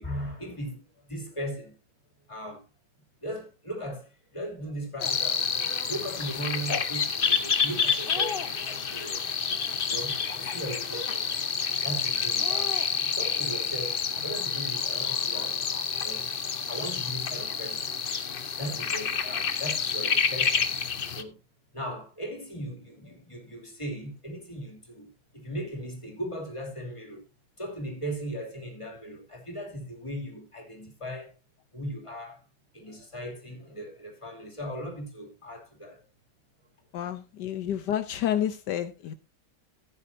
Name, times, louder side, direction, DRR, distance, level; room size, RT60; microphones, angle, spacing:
voice 1, 0.0-1.7 2.3-2.7 3.2-9.4 9.6-11.3 11.8-12.8 13.1-15.6 16.0-16.3 16.7-17.9 18.6-20.8 21.1-21.4 21.7-27.2 27.6-31.3 31.7-32.4 32.7-36.0, right 1 dB, 15° left, 2.9 m, -38 dB
sound 1, 5.0-21.2, left 6 dB, 40° left, 0.8 m, -29 dB
voice 2, 36.9-39.1, left 10 dB, 80° left, 1.4 m, -29 dB
15.0 x 9.4 x 2.7 m
omnidirectional pair, 1.9 m